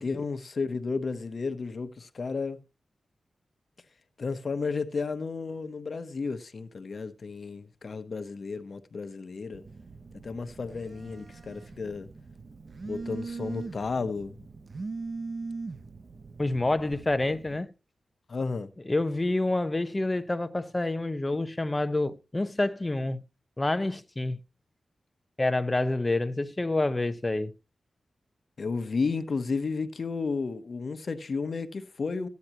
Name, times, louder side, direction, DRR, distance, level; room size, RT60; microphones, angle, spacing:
voice 1, 0.0-2.6 4.2-9.6 10.2-12.1 12.8-14.4 18.3-18.7 28.6-32.3, left 4 dB, 60° left, 1.0 m, -32 dB
Telephone, 9.5-17.6, right 4 dB, 50° right, 0.8 m, -41 dB
voice 2, 16.4-17.7 18.9-23.2 23.6-24.4 25.4-27.5, left 2 dB, 25° left, 1.0 m, -28 dB
14.5 x 9.5 x 2.9 m
cardioid pair, 70°, 0 cm